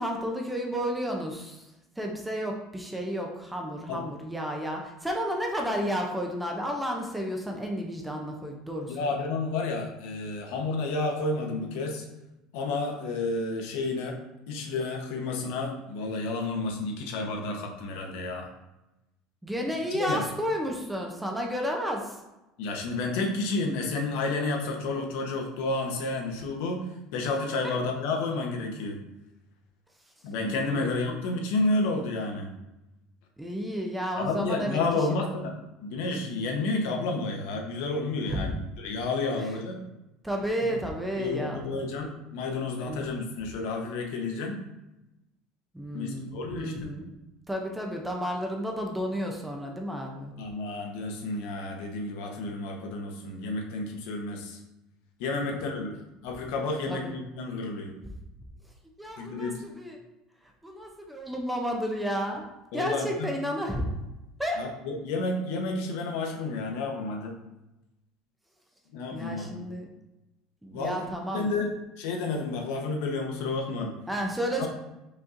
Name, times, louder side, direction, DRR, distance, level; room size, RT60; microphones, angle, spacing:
voice 1, 0.0-1.7 2.0-9.2 19.4-22.2 27.6-27.8 30.4-31.2 33.4-34.8 35.2-35.4 38.3-38.5 39.4-39.5 40.2-41.8 42.8-43.2 45.7-47.1 47.5-50.3 55.4-55.6 56.9-57.1 59.0-60.0 60.6-62.4 62.7-63.9 64.4-64.7 69.1-69.9 70.6-71.5 74.1-74.7, equal, 5° right, 1 dB, 0.4 m, -32 dB
voice 2, 8.9-12.0 12.5-14.2 14.5-18.5 20.1-20.2 22.6-26.8 27.1-29.0 30.2-32.5 34.2-35.5 35.8-39.8 40.6-40.7 41.2-44.6 45.9-46.9 50.4-54.6 55.2-55.9 56.2-57.9 59.2-59.6 62.7-63.3 64.6-67.3 68.9-69.6 70.7-71.1 71.3-73.9 74.6-74.7, left 3 dB, 65° left, 1 dB, 0.8 m, -31 dB
5.1 x 4.2 x 2.5 m, 0.96 s
cardioid pair, 175°, 0 cm